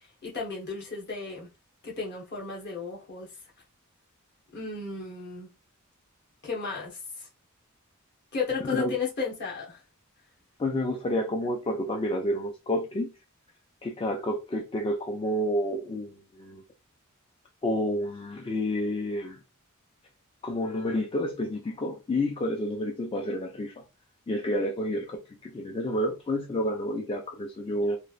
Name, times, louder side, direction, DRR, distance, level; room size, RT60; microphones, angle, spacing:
voice 1, 0.0-1.5 1.8-3.3 4.5-5.5 6.4-7.3 8.3-9.8, left 4 dB, 50° left, 1.1 m, -34 dB
voice 2, 8.6-8.9 10.6-13.1 13.8-16.6 17.6-19.4 20.4-23.8 24.3-28.0, left 1 dB, 25° left, 0.3 m, -29 dB
3.1 x 2.4 x 2.4 m
head